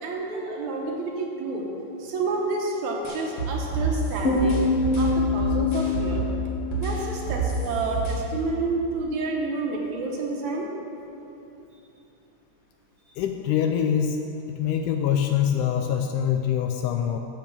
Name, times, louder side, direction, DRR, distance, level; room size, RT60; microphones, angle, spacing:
voice 1, 0.0-1.7 2.0-4.6 4.9-6.3 6.7-10.7, right 3 dB, 65° right, -1 dB, 2.4 m, -29 dB
sound 1, 3.0-6.4 6.7-8.1, right 5 dB, 35° left, 1.8 m, -28 dB
Piano, 4.2-7.7, left 4 dB, 55° left, 2.0 m, -26 dB
voice 2, 13.2-14.2 14.5-17.2, left 9 dB, 80° left, 5 dB, 1.9 m, -24 dB
9.3 x 7.4 x 7.1 m, 2.9 s
omnidirectional pair, 3.9 m